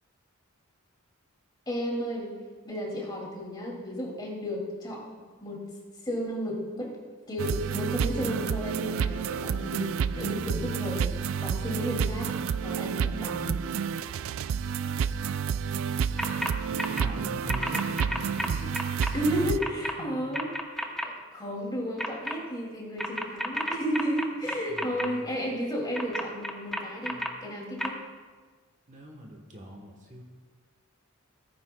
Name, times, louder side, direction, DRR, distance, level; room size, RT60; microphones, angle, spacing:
voice 1, 1.7-2.3 2.6-5.0 5.4-5.6 6.0-6.9 7.3-12.3 12.6-13.6 19.1-20.5 20.7-28.0, equal, 20° left, -2 dB, 2.5 m, -33 dB
sound 1, 7.4-19.6, right 7 dB, 65° right, 0.3 m, -30 dB
sound 2, 16.2-16.5 16.8-17.0 17.5-19.1 19.6-19.9 20.3-21.1 22.0-22.3 23.0-25.1 25.9-27.3 27.8-27.9, equal, ahead, 0.8 m, -31 dB
voice 2, 16.7-20.2 24.7-25.4 27.0-27.3 28.9-30.2, equal, 35° right, 0 dB, 1.2 m, -42 dB
17.5 x 9.6 x 2.3 m, 1.5 s
head